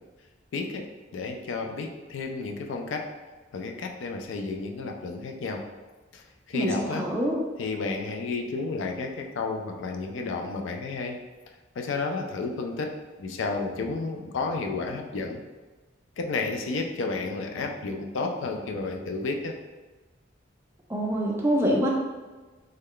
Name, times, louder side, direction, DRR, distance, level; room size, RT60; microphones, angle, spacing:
voice 1, 0.5-0.9 1.1-3.1 3.5-5.6 6.1-7.1 7.6-11.2 11.8-12.9 13.2-15.5 16.2-19.6, left 3 dB, 70° left, 3 dB, 0.4 m, -31 dB
voice 2, 6.5-7.4 20.9-21.9, equal, 10° right, -2 dB, 0.4 m, -25 dB
3.2 x 2.2 x 3.6 m, 1.3 s
head